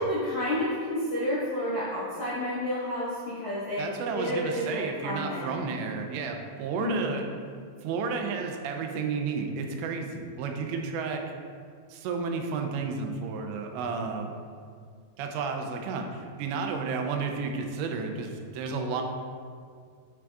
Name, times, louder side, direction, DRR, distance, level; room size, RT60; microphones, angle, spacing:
voice 1, 0.0-5.5 6.8-7.1, left 1 dB, 80° left, -11 dB, 1.2 m, -30 dB
voice 2, 3.8-7.3 7.8-11.2 11.9-14.3 15.2-19.0, right 4 dB, 90° right, 4 dB, 2.9 m, -32 dB
8.2 x 6.0 x 2.3 m, 2.1 s
omnidirectional pair, 5.0 m